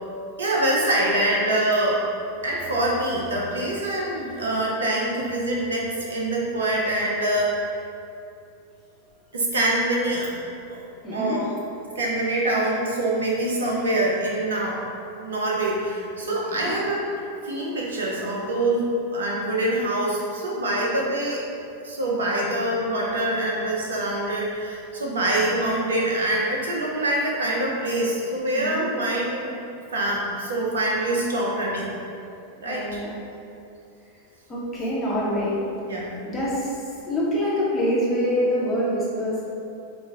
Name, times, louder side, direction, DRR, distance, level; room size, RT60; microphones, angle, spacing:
voice 1, 0.4-2.1 2.4-7.7 9.3-10.3 10.7-10.8 11.1-11.5 11.9-14.9 15.2-17.1 17.4-21.4 21.8-29.6 29.9-32.0 32.6-33.0 35.9-36.1, right 1 dB, 65° right, -3 dB, 0.5 m, -25 dB
voice 2, 11.0-11.4 16.2-16.8 28.6-28.8 32.6-33.1 34.5-35.5 36.2-36.7 37.0-39.4, equal, 15° left, -8 dB, 1.1 m, -25 dB
4.0 x 2.4 x 3.5 m, 2.5 s
figure-of-eight pair, 90°, 0 cm